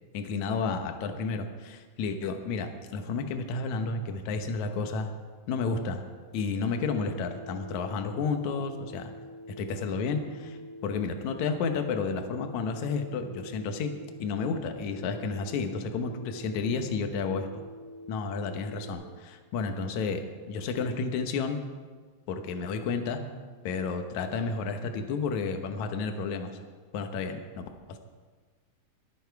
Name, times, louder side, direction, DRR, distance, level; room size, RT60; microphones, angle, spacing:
voice 1, 0.1-5.1 5.5-6.0 6.3-9.1 9.6-13.9 14.2-17.5 18.1-20.2 20.5-21.6 22.3-23.2 23.6-26.5 26.9-28.0, left 4 dB, 65° left, 6 dB, 2.3 m, -31 dB
Telephone, 6.7-18.9, left 1 dB, 50° right, 6.3 m, -45 dB
23.5 x 9.0 x 4.7 m, 1.5 s
omnidirectional pair, 3.8 m